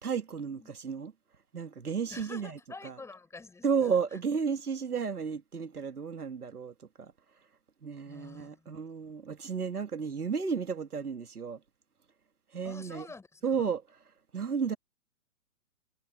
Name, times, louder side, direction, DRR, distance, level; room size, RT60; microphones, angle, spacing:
voice 1, 0.0-1.1 1.5-2.6 2.8-2.9 3.6-7.1 7.8-11.6 12.5-13.1 13.4-13.8 14.3-14.8, right 6 dB, 85° right, 2.7 m, -33 dB
voice 2, 2.1-4.0 8.0-8.8 12.6-13.7, left 3 dB, 5° left, 4.8 m, -48 dB
hypercardioid pair, 135°, 44 cm